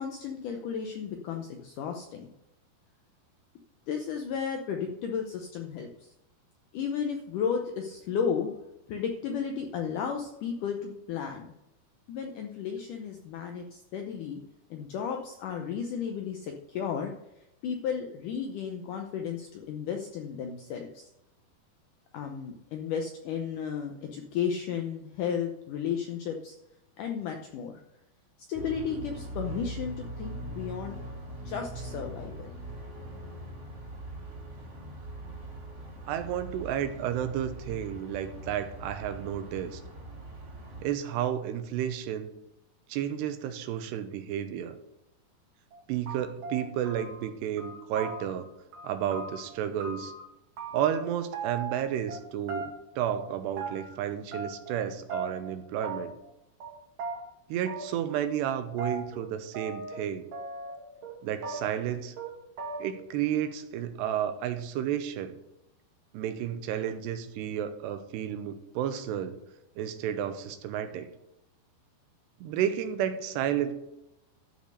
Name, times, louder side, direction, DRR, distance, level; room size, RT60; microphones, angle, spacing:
voice 1, 0.0-2.3 3.9-6.1 6.7-8.5 8.9-11.5 12.1-14.4 14.7-17.1 17.6-21.1 22.1-26.5 27.0-27.8 28.5-31.0 31.5-32.5, left 7 dB, 85° left, 3 dB, 1.8 m, -33 dB
sound 1, 28.5-40.8, right 1 dB, 40° right, 2.9 m, -41 dB
voice 2, 36.1-39.8 40.8-42.3 42.9-44.8 45.9-48.5 48.8-50.1 50.7-56.2 57.5-60.3 61.2-62.2 62.8-65.4 66.1-69.4 69.8-71.1 72.4-73.7, right 10 dB, 80° right, 10 dB, 2.9 m, -32 dB
sound 2, 45.7-45.8 46.1-47.3 47.6-48.5 48.7-50.2 50.6-51.1 51.3-52.2 52.5-53.0 53.2-54.0 54.3-54.8 55.1-55.5 55.8-56.3 56.6-56.7 57.0-57.2 57.7-58.2 58.4-60.0 60.3-61.2 61.4-61.9 62.2-62.3 62.6-63.1, right 3 dB, 55° right, 3.1 m, -38 dB
13.0 x 5.4 x 6.6 m, 0.88 s
omnidirectional pair, 4.8 m